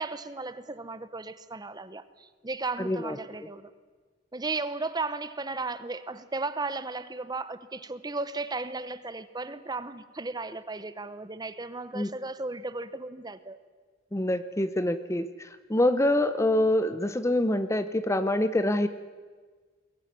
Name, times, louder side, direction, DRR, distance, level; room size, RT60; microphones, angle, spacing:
voice 1, 0.0-3.7 4.3-13.6, right 3 dB, 20° right, 0.9 m, -35 dB
voice 2, 2.8-3.2 11.9-12.1 14.1-18.9, left 1 dB, 15° left, 0.7 m, -25 dB
21.5 x 17.0 x 9.5 m
head